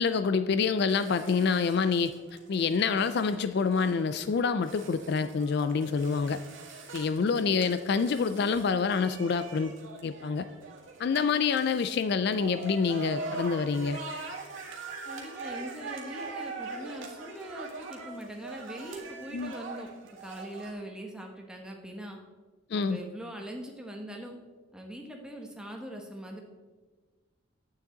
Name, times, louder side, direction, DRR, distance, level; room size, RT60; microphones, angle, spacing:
voice 1, 0.0-2.1 2.5-6.4 6.9-9.7 10.0-10.5 11.0-14.0 19.3-19.5 22.7-23.0, left 5 dB, 50° left, 11 dB, 0.3 m, -27 dB
sound 1, 0.9-20.7, right 3 dB, 65° right, 1.8 m, -43 dB
voice 2, 15.1-19.9 20.2-22.2 22.7-24.3 24.7-26.4, equal, 5° right, 1 dB, 1.1 m, -42 dB
9.7 x 8.5 x 3.9 m, 1.4 s
head